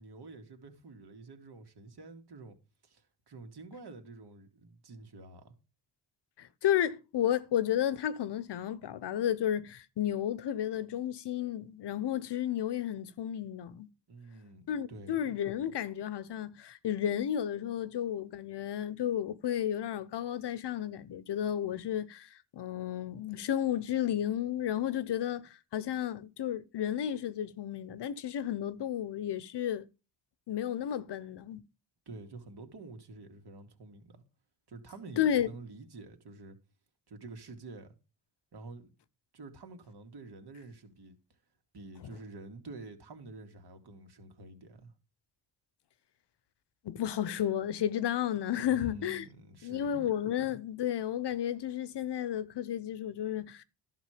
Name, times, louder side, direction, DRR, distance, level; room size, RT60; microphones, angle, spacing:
voice 1, 0.0-2.6 2.8-5.5 14.1-15.2 32.1-34.2 34.7-36.6 37.1-38.0 38.5-38.9 39.3-41.2 41.7-44.9 48.6-50.0, right 3 dB, 60° right, 2.5 m, -48 dB
voice 2, 6.4-13.9 14.7-29.8 30.5-31.6 35.2-35.5 46.8-49.3 49.6-53.6, left 10 dB, 65° left, 1.0 m, -32 dB
11.5 x 6.4 x 5.1 m
supercardioid pair, 55°, 45 cm